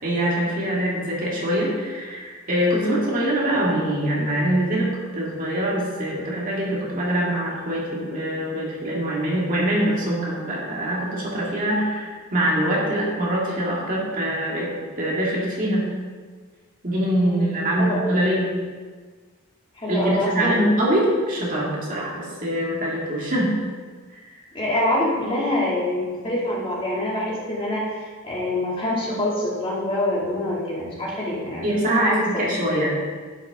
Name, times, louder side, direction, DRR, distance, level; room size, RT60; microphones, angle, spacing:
voice 1, 0.0-15.9 16.8-18.5 19.9-23.6 24.1-24.4 31.6-32.9, right 1 dB, 40° right, -4 dB, 2.3 m, -24 dB
voice 2, 17.2-18.0 19.7-20.7 24.5-32.4, left 1 dB, 25° left, -6 dB, 2.6 m, -25 dB
11.0 x 8.9 x 3.7 m, 1.5 s
head